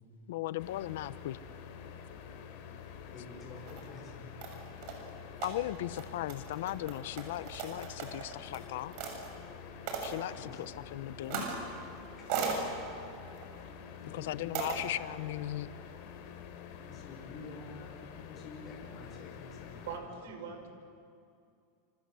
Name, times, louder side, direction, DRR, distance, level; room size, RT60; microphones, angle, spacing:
voice 1, 0.3-1.4 5.4-9.0 10.0-11.4 14.1-15.7, left 14 dB, 75° left, 16 dB, 0.9 m, -37 dB
sound 1, 0.6-20.0, left 7 dB, 55° left, 4.0 m, -48 dB
voice 2, 3.1-4.3 10.4-10.6 12.2-12.3 13.6-14.7 16.8-19.9 20.4-20.5, left 3 dB, 25° left, -1 dB, 6.2 m, -49 dB
sound 2, 3.4-3.8 4.4-9.3 9.9-10.2 11.2-11.7 12.0-12.6 13.3-13.6 14.5-14.8, right 6 dB, 50° right, 6.6 m, -38 dB
voice 3, 19.9-20.7, right 6 dB, 80° right, 6 dB, 5.6 m, -42 dB
27.5 x 27.0 x 7.8 m, 2.4 s
supercardioid pair, 155°, 0 cm